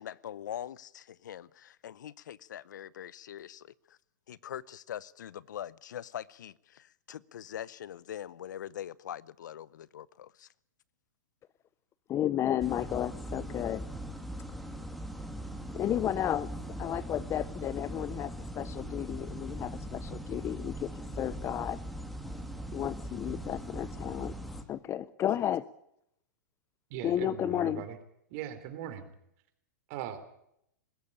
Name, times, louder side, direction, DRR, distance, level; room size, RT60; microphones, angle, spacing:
voice 1, 0.0-4.0 4.3-10.5, left 10 dB, 75° left, 0.7 m, -43 dB
voice 2, 12.1-13.9 15.7-16.5 16.8-20.9 21.2-21.8 22.7-24.3 24.7-25.7 27.0-27.8, left 11 dB, 25° left, 0.7 m, -32 dB
sound 1, 12.6-24.6, right 1 dB, ahead, 2.6 m, -40 dB
voice 3, 26.9-28.0 28.3-29.1 29.9-30.2, right 11 dB, 50° right, 3.7 m, -39 dB
20.5 x 16.0 x 8.7 m
hypercardioid pair, 120°, 10 cm